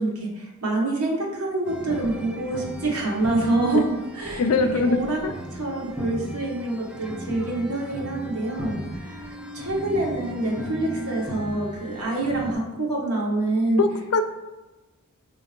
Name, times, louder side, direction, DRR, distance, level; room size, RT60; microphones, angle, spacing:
voice 1, 0.0-4.4 4.7-5.2 5.5-9.2 9.5-13.8, right 2 dB, 90° right, -2 dB, 1.1 m, -26 dB
sound 1, 1.7-12.5, equal, 5° right, 0.3 m, -36 dB
voice 2, 4.4-5.3 13.8-14.4, left 3 dB, 70° left, 8 dB, 0.4 m, -22 dB
5.8 x 2.8 x 2.9 m, 1.1 s
head